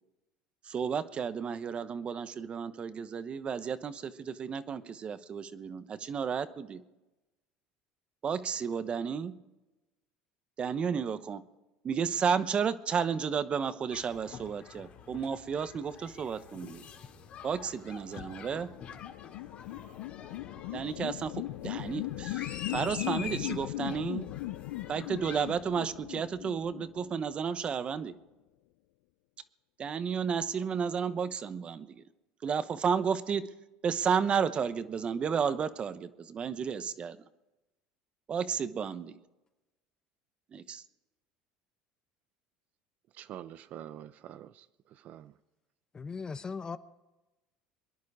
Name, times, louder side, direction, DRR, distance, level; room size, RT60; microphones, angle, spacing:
voice 1, 0.6-6.8 8.2-9.4 10.6-11.4 11.8-16.8 17.4-18.7 20.7-24.3 24.9-28.1 29.8-32.0 32.4-33.5 33.8-37.2 38.3-39.1 40.5-40.8, right 6 dB, 35° right, 1.0 m, -32 dB
sound 1, 13.9-25.5, left 7 dB, 45° left, 2.2 m, -47 dB
sound 2, 17.9-27.6, left 17 dB, 85° left, 0.5 m, -39 dB
voice 2, 43.1-45.4, right 11 dB, 55° right, 0.6 m, -46 dB
voice 3, 45.9-46.8, left 5 dB, 25° left, 0.7 m, -38 dB
23.5 x 10.5 x 4.9 m
supercardioid pair, 105°, 3 cm